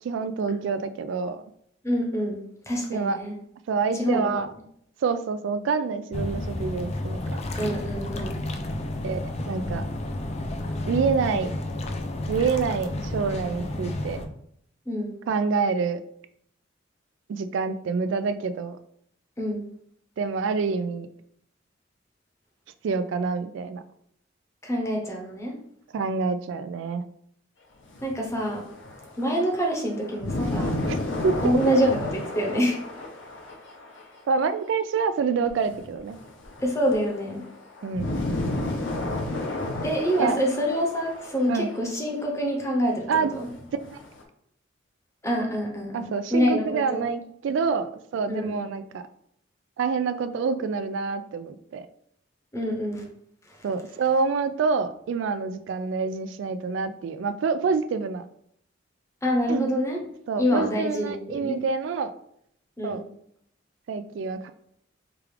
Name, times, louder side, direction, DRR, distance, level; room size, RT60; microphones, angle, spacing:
voice 1, 0.0-1.4 2.9-3.2 3.7-4.5 5.0-7.2 9.0-9.2 9.5-9.8 10.9-11.5 12.3-14.2 15.3-16.0 17.3-18.8 20.2-21.1 22.8-23.8 25.9-27.0 30.9-31.0 31.2-31.8 34.3-36.2 37.8-38.1 40.2-40.4 41.5-41.7 43.1-43.3 43.9-44.0 45.9-49.0 49.8-51.9 53.6-58.3 59.5-59.7 60.3-62.1 62.8-63.0 63.9-64.5, right 5 dB, 70° right, 10 dB, 0.3 m, -27 dB
voice 2, 1.8-2.4 2.7-3.3 3.9-4.3 7.6-8.4 14.9-15.1 19.4-19.6 24.6-25.6 28.0-28.6 29.2-30.8 31.4-32.8 36.6-37.5 39.8-43.1 43.4-43.5 45.2-47.0 48.3-48.5 52.5-53.1 59.2-60.0 60.4-61.6 62.8-63.0, equal, 15° left, 0 dB, 0.8 m, -26 dB
sound 1, 6.1-14.3, left 1 dB, 35° left, 0.4 m, -31 dB
sound 2, 27.9-34.2 35.5-41.9 42.2-42.3 43.4-44.2, left 2 dB, 70° left, 0.7 m, -32 dB
4.7 x 2.4 x 3.3 m, 0.69 s
head